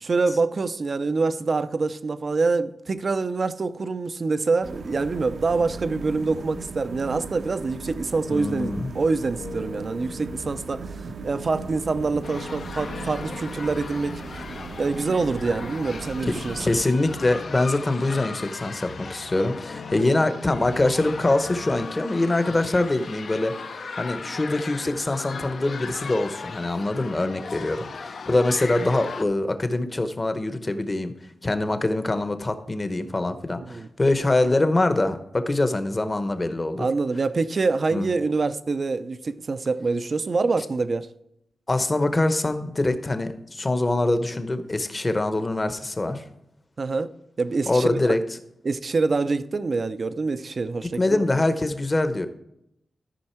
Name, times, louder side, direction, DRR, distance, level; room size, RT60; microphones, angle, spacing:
voice 1, 0.0-14.4 14.8-16.7 27.8-27.9 33.6-33.9 36.8-41.1 46.8-47.1 47.4-48.1 48.6-51.2, right 3 dB, 45° right, 0.5 m, -25 dB
sound 1, 4.6-16.8, right 4 dB, 75° right, 0.9 m, -38 dB
sound 2, 7.7-21.9, left 5 dB, 90° left, 1.1 m, -44 dB
voice 2, 8.3-8.9 16.6-23.5 24.0-31.1 31.4-36.9 37.9-38.1 41.7-46.2 47.7-48.2 50.8-52.3, left 2 dB, 25° left, 0.8 m, -24 dB
sound 3, 12.2-29.2, left 5 dB, 60° left, 0.6 m, -38 dB
13.0 x 5.4 x 4.4 m
wide cardioid pair, 105°, 0 cm